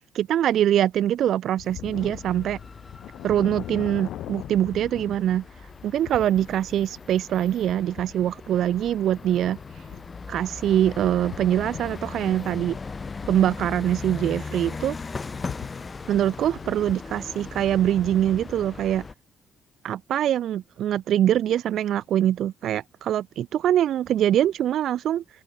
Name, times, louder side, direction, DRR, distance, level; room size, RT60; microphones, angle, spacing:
voice 1, 0.1-2.6 3.2-9.6 10.3-12.8 13.3-14.9 16.1-19.0 19.8-25.2, right 11 dB, 75° right, 0.5 m, -23 dB
sound 1, 1.6-19.0, left 13 dB, 80° left, 5.3 m, -43 dB
sound 2, 1.9-19.1, left 4 dB, 30° left, 5.5 m, -39 dB
open air
cardioid pair, 90°, 0 cm